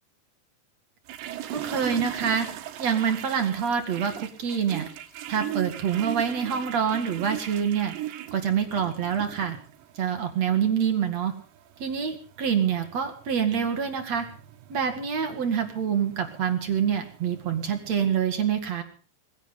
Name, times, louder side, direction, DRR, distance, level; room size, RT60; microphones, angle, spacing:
sound 1, 1.1-18.1, right 12 dB, 85° right, 3.8 m, -40 dB
voice 1, 1.5-2.5 2.8-4.9 5.3-7.9 8.3-9.6 10.0-11.3 11.8-14.3 14.7-18.8, right 7 dB, 45° right, 6 dB, 2.9 m, -26 dB
21.5 x 16.5 x 3.9 m, 0.39 s
omnidirectional pair, 4.9 m